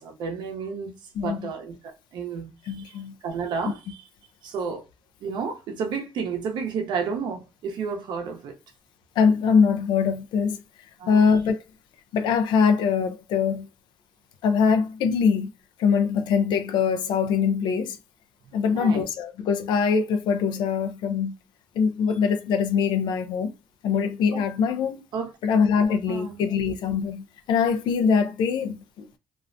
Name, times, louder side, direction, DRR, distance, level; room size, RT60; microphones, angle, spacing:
voice 1, 0.0-2.9 3.2-4.0 4.4-4.8 5.2-8.5 11.0-11.3 18.7-19.0 24.3-24.4 25.1-25.3 26.1-26.4, right 5 dB, 70° right, 0.7 m, -31 dB
voice 2, 1.1-1.5 2.6-3.2 9.2-10.6 11.1-11.6 12.1-13.7 14.4-15.5 15.8-18.0 18.5-21.4 21.8-23.5 23.8-25.0 25.4-29.1, left 6 dB, 75° left, 0.3 m, -23 dB
2.4 x 2.1 x 2.5 m
supercardioid pair, 75°, 8 cm